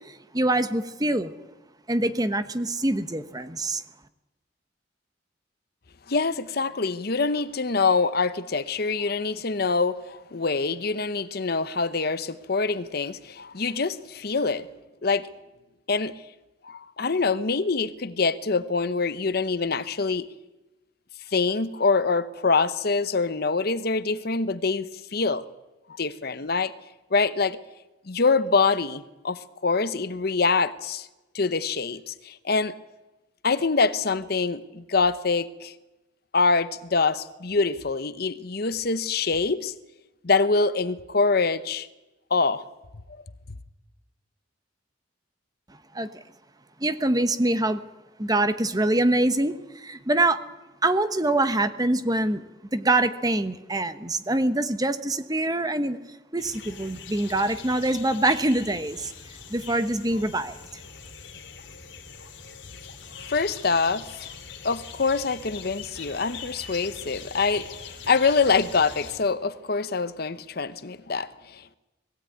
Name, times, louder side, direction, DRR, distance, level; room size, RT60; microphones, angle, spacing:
voice 1, 0.3-1.3 1.9-3.8 45.9-46.2 46.8-47.8 48.2-50.4 50.8-52.4 52.7-56.0 56.3-59.1 59.5-60.6, right 2 dB, 20° right, 1.0 m, -24 dB
voice 2, 6.1-14.7 15.0-15.3 15.9-16.1 16.6-20.3 21.3-25.4 26.0-26.7 27.1-27.6 28.1-31.1 31.3-32.7 33.4-35.7 36.3-39.7 40.2-41.9 42.3-42.6 63.3-64.3 64.6-71.8, left 4 dB, 55° left, 0.8 m, -25 dB
sound 1, 56.4-69.2, left 6 dB, 75° left, 3.0 m, -42 dB
21.0 x 16.0 x 9.3 m
head